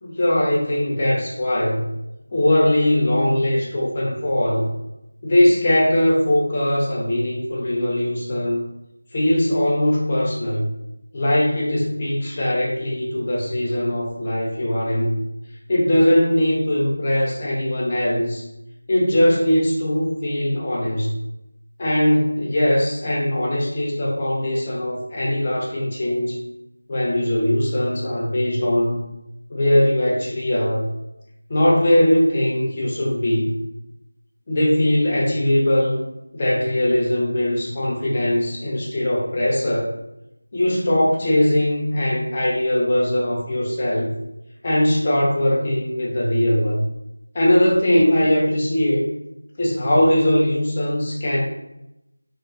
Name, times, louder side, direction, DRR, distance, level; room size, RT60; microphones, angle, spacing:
voice 1, 0.0-1.9 2.3-4.7 5.2-8.6 9.1-10.7 11.1-15.2 15.7-18.5 18.9-21.1 21.8-26.4 26.9-29.0 29.5-30.9 31.5-33.6 34.5-36.1 36.3-39.9 40.5-44.1 44.6-46.8 47.3-49.0 49.6-51.4, left 1 dB, 20° left, -4 dB, 0.5 m, -20 dB
3.0 x 2.1 x 2.3 m, 0.87 s
figure-of-eight pair, 175°, 0 cm